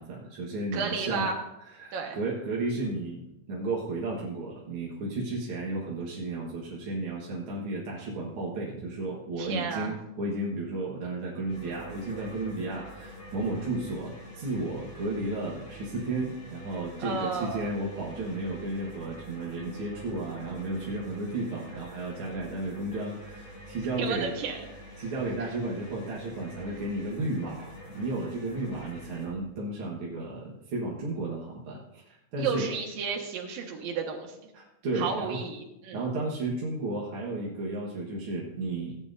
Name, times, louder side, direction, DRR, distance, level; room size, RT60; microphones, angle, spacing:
voice 1, 0.0-1.3 1.7-24.3 25.0-32.7 34.5-35.4 35.9-38.9, right 2 dB, 50° right, -5 dB, 1.8 m, -33 dB
voice 2, 0.7-1.4 1.9-2.2 9.4-9.9 17.0-17.7 24.0-24.6 32.4-34.4 35.0-36.0, right 5 dB, 90° right, 2 dB, 3.2 m, -32 dB
sound 1, 11.5-29.3, equal, 70° left, 5.8 m, -46 dB
16.5 x 9.8 x 2.7 m, 0.89 s
omnidirectional pair, 3.9 m